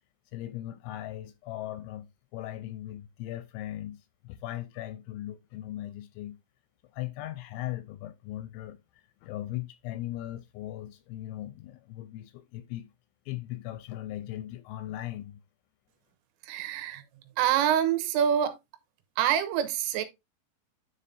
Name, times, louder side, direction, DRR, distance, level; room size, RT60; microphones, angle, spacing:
voice 1, 0.3-2.1 2.3-6.4 6.9-12.9 13.3-15.4, left 14 dB, 85° left, 2.7 m, -38 dB
voice 2, 16.4-17.0 17.4-18.6 19.2-20.0, right 9 dB, 90° right, 3.5 m, -26 dB
9.9 x 5.1 x 2.6 m
omnidirectional pair, 5.7 m